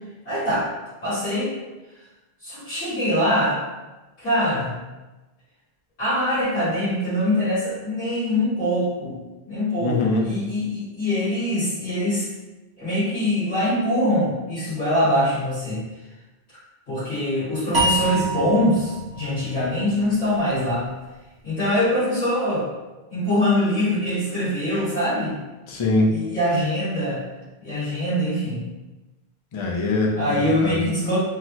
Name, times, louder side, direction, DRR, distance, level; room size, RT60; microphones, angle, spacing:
voice 1, 0.3-0.7 1.0-1.5 2.4-3.6 4.2-4.7 6.0-9.2 9.5-10.0 10.2-12.3 12.8-15.8 16.9-20.9 21.4-22.7 23.1-25.4 26.1-27.2 27.6-28.6 30.1-31.2, left 1 dB, 80° left, -16 dB, 1.9 m, -23 dB
voice 2, 9.8-10.2 25.7-26.1 29.5-30.8, left 2 dB, 40° left, -2 dB, 0.4 m, -22 dB
sound 1, 17.7-20.9, right 1 dB, 25° right, 0.6 m, -27 dB
3.9 x 2.0 x 2.8 m, 1.1 s
omnidirectional pair, 1.1 m